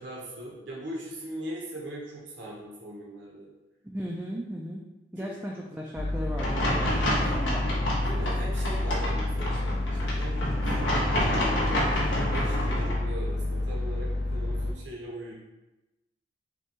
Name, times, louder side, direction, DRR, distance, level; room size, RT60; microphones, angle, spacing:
voice 1, 0.0-3.5 5.2-5.3 8.0-10.4 10.7-15.3, right 1 dB, 75° right, -4 dB, 0.9 m, -40 dB
voice 2, 3.8-4.9 5.1-7.7, equal, 10° right, -3 dB, 0.3 m, -36 dB
sound 1, 5.9-14.7, left 2 dB, 60° left, 0.4 m, -29 dB
sound 2, 6.4-12.9, equal, 85° left, 1.2 m, -29 dB
6.1 x 2.3 x 2.9 m, 1.0 s
head